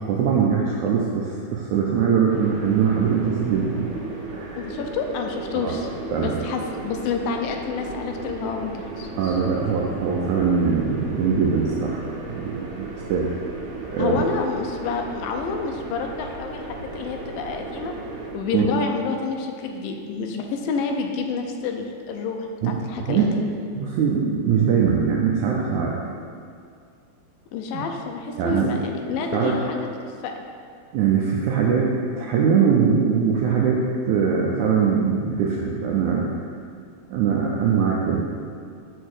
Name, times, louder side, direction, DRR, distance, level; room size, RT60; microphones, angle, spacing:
voice 1, 0.0-3.9 4.3-4.6 5.5-5.7 6.1-6.4 9.2-12.0 12.3-13.3 13.9-14.2 18.5-18.7 22.6-22.8 23.1-23.2 23.8-25.9 27.7-27.8 28.4-28.7 29.3-29.6 30.9-36.3 37.1-38.3, right 6 dB, 90° right, -2 dB, 1.7 m, -22 dB
sound 1, 2.3-18.3, right 3 dB, 65° right, 2.1 m, -35 dB
voice 2, 4.6-5.9 6.2-9.1 14.0-18.0 18.3-23.5 27.5-30.4, left 5 dB, 80° left, 3 dB, 2.3 m, -29 dB
6.8 x 4.4 x 6.4 m, 2.3 s
omnidirectional pair, 4.2 m